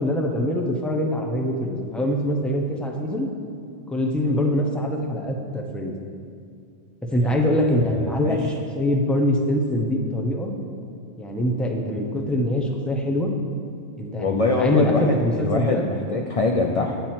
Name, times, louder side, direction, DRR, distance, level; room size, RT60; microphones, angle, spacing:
voice 1, 0.0-3.3 3.9-5.9 7.1-10.5 11.2-13.3 14.0-15.9, left 1 dB, ahead, 1 dB, 0.6 m, -23 dB
voice 2, 7.2-8.5 14.2-17.0, left 3 dB, 45° left, 2 dB, 0.4 m, -25 dB
8.8 x 7.7 x 4.4 m, 2.3 s
omnidirectional pair, 1.2 m